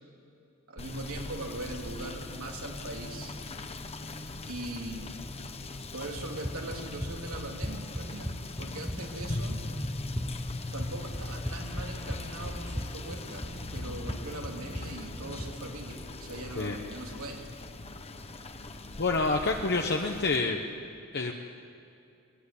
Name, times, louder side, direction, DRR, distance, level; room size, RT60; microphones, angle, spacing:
voice 1, 0.7-3.4 4.5-5.2 5.9-8.3 8.6-9.7 10.7-13.5 13.7-17.5, right 1 dB, 80° right, 1 dB, 3.0 m, -40 dB
Rain / Motor vehicle (road), 0.8-20.4, left 2 dB, 30° left, 1.1 m, -40 dB
Run, 6.2-15.6, equal, 5° left, 0.7 m, -38 dB
voice 2, 19.0-20.6 21.1-21.3, left 3 dB, 50° left, 2 dB, 1.1 m, -27 dB
23.5 x 17.0 x 10.0 m, 2.6 s
head